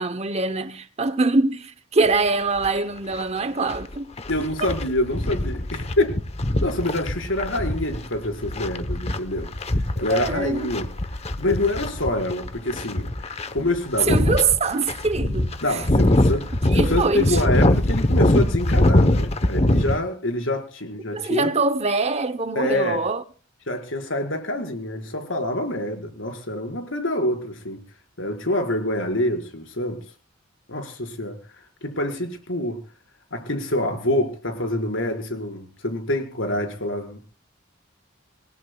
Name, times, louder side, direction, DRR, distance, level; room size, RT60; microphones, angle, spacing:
voice 1, 0.0-4.1 4.4-4.7 10.1-10.7 14.1-15.8 16.7-17.4 21.1-23.2, right 3 dB, 35° right, 0.8 m, -24 dB
sound 1, 2.0-2.1 2.6-2.7 3.1-20.0, left 1 dB, 30° left, 0.9 m, -23 dB
voice 2, 4.3-6.1 6.6-9.5 10.0-10.9 11.4-13.1 13.5-14.3 15.6-21.5 22.5-23.0 23.7-27.8 28.2-30.0 30.7-31.4 31.8-32.8 33.3-37.3, left 1 dB, 75° left, 5.0 m, -26 dB
28.0 x 18.5 x 2.3 m
head